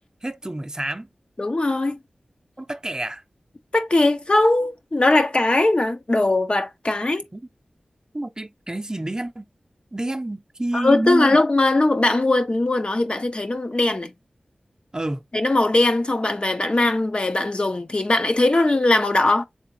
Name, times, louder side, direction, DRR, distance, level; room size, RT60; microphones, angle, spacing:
voice 1, 0.2-1.1 2.6-3.2 7.3-7.4 8.1-9.4 9.9-11.4 14.9-15.2, right 1 dB, 25° right, 0.6 m, -28 dB
voice 2, 1.4-2.0 3.7-7.2 10.7-14.1 15.3-19.4, left 2 dB, 40° left, 0.6 m, -20 dB
3.6 x 3.4 x 3.0 m
cardioid pair, 40°, 3 cm